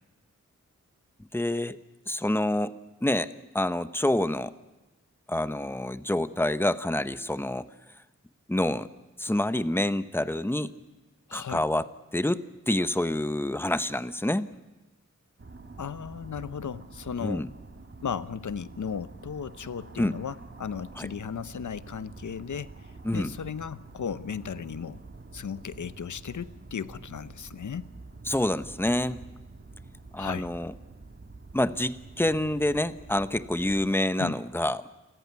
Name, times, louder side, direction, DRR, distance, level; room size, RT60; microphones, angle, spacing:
voice 1, 1.3-1.8 2.1-2.7 3.0-4.5 5.3-7.7 8.5-8.9 9.2-10.7 11.3-11.9 12.1-14.5 17.2-17.5 20.0-20.2 21.0-21.1 23.0-23.3 28.3-29.2 30.1-30.7 31.5-34.9, left 1 dB, 10° left, 12 dB, 0.8 m, -27 dB
voice 2, 11.3-11.6 15.8-17.4 18.0-22.7 23.1-25.0 25.3-27.9 30.2-30.5 34.2-34.3, left 7 dB, 90° left, 15 dB, 0.8 m, -35 dB
sound 1, 15.4-33.9, right 3 dB, 45° right, 1.8 m, -47 dB
29.0 x 14.0 x 9.4 m, 1.1 s
wide cardioid pair, 100°, 29 cm